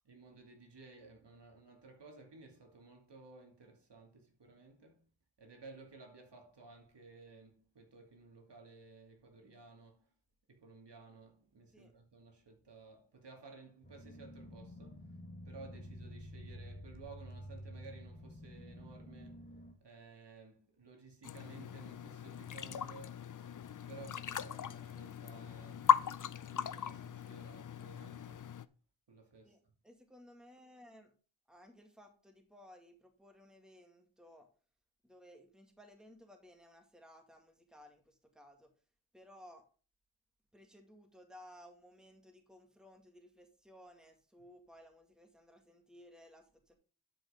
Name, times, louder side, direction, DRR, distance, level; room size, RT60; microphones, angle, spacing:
voice 1, 0.0-5.1 5.4-10.1 10.5-15.0 15.4-19.4 19.8-23.3 23.9-26.0 26.4-28.5 29.1-29.6, right 3 dB, 55° right, 2.4 m, -56 dB
sound 1, 13.8-19.7, equal, 20° left, 1.5 m, -50 dB
sound 2, 21.2-28.6, left 8 dB, 40° left, 0.5 m, -37 dB
voice 2, 29.4-31.1 31.5-34.5 35.0-38.7 39.1-39.7 40.5-46.7, equal, ahead, 2.1 m, -58 dB
11.5 x 5.4 x 3.7 m
cardioid pair, 70°, 49 cm